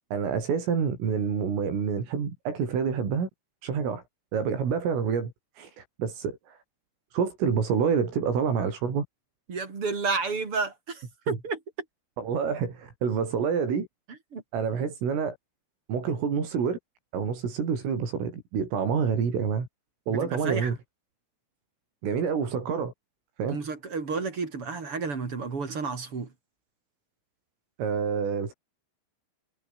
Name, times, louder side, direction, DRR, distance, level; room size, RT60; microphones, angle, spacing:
voice 1, 0.1-3.3 3.6-4.0 4.3-6.6 7.1-9.0 11.3-11.4 12.2-13.9 14.5-15.4 15.9-16.8 17.1-19.7 20.1-20.8 22.0-22.9 23.4-23.6 27.8-28.5, right 6 dB, 75° right, 8.4 m, -27 dB
voice 2, 9.5-11.6 14.3-14.4 20.1-20.7 23.5-26.3, right 4 dB, 30° right, 3.6 m, -31 dB
omnidirectional pair, 5.8 m